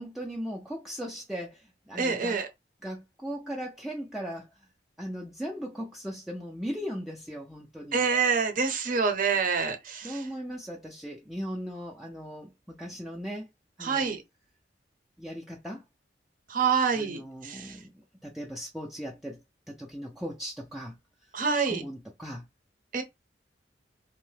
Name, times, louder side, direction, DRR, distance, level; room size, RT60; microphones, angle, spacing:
voice 1, 0.0-2.4 2.8-4.5 5.0-8.1 10.0-13.5 13.8-14.1 15.2-15.8 16.9-17.9 18.2-19.4 19.7-21.0 21.7-22.4, equal, ahead, 0.4 m, -38 dB
voice 2, 2.0-2.5 7.9-10.2 13.8-14.2 16.5-17.7 21.3-21.8 22.9-23.0, right 5 dB, 50° right, 0.6 m, -27 dB
2.7 x 2.1 x 3.2 m
head